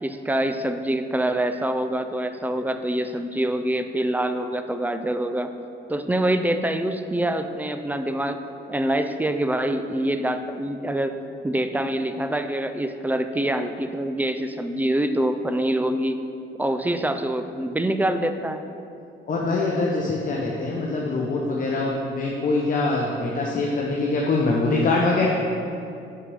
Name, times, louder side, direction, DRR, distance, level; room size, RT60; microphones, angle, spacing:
voice 1, 0.0-5.5 5.9-8.4 8.7-11.2 11.4-16.2 16.6-18.6, right 1 dB, 10° right, 8 dB, 0.4 m, -25 dB
voice 2, 19.3-25.3, left 3 dB, 45° left, -2 dB, 0.8 m, -23 dB
5.8 x 4.8 x 5.5 m, 2.6 s
cardioid pair, 90°, 20 cm